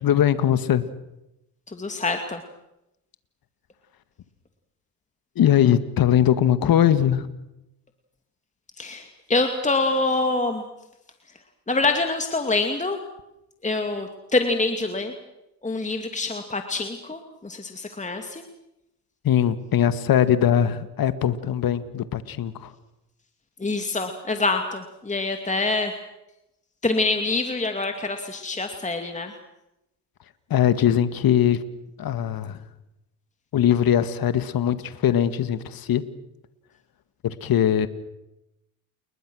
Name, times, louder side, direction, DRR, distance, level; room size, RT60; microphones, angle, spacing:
voice 1, 0.0-0.8 5.4-7.3 19.2-22.7 30.5-31.6 32.0-32.7 33.5-36.0 37.2-37.9, left 10 dB, 50° left, 12 dB, 1.9 m, -21 dB
voice 2, 1.7-2.4 8.8-10.6 11.7-13.0 13.6-15.1 15.6-18.4 23.6-25.9 26.8-29.3, left 3 dB, 15° left, 5 dB, 2.5 m, -25 dB
29.5 x 21.5 x 6.4 m, 0.89 s
supercardioid pair, 75°, 46 cm